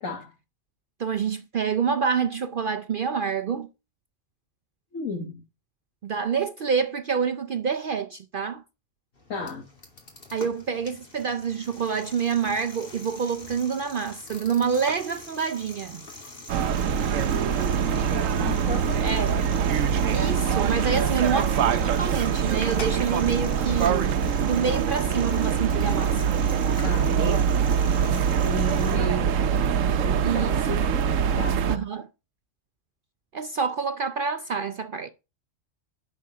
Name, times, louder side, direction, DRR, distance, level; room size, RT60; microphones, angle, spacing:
voice 1, 0.0-0.3 4.9-5.4 9.3-9.7 17.2-19.5 26.8-27.4 28.1-31.7, left 2 dB, 85° left, 1.9 m, -35 dB
voice 2, 1.0-3.7 6.0-8.6 10.3-16.0 19.0-19.4 20.1-26.3 30.2-30.5 31.7-32.1 33.3-35.1, right 6 dB, 55° right, 0.6 m, -27 dB
sound 1, 9.1-29.0, left 2 dB, 45° left, 2.6 m, -44 dB
sound 2, 16.5-31.8, right 7 dB, 80° right, 1.1 m, -24 dB
11.0 x 4.6 x 6.0 m
omnidirectional pair, 1.3 m